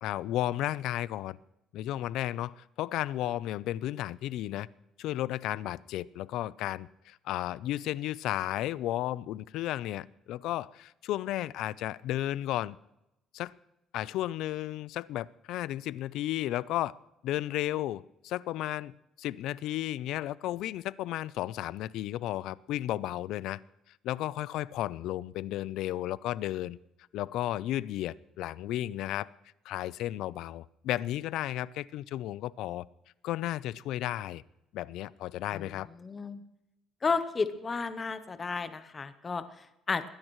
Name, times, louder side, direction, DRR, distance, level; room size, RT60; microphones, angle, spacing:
voice 1, 0.0-1.4 1.7-4.7 5.0-12.8 13.3-13.5 13.9-16.9 17.2-23.6 24.0-26.8 27.1-29.3 29.6-32.8 33.2-34.4 34.7-35.9, left 14 dB, 65° left, 20 dB, 0.4 m, -33 dB
voice 2, 36.0-36.4 37.0-40.0, left 4 dB, 20° left, 11 dB, 0.7 m, -32 dB
21.5 x 16.5 x 3.1 m, 0.89 s
cardioid pair, 170°, 0 cm